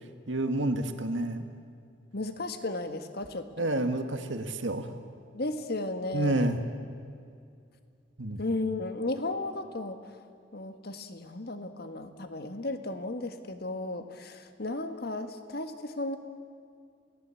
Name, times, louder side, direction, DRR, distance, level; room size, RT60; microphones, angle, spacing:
voice 1, 0.3-1.5 3.6-4.9 6.1-6.6 8.2-8.4, right 1 dB, 75° right, 7 dB, 1.8 m, -29 dB
voice 2, 2.1-3.7 5.3-6.6 8.4-10.2 10.5-16.2, left 2 dB, 55° left, 8 dB, 1.6 m, -34 dB
28.0 x 18.0 x 8.5 m, 2.3 s
head